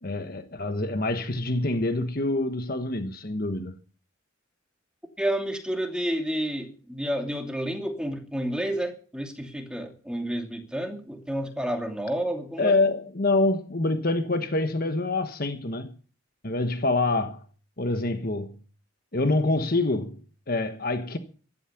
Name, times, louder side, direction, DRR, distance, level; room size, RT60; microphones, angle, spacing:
voice 1, 0.0-3.7 12.6-16.0 16.4-17.4 17.8-18.6 19.1-20.2 20.5-21.2, left 2 dB, 45° left, 1.3 m, -26 dB
voice 2, 5.2-12.7, right 1 dB, 5° right, 2.6 m, -30 dB
15.5 x 12.5 x 6.0 m
head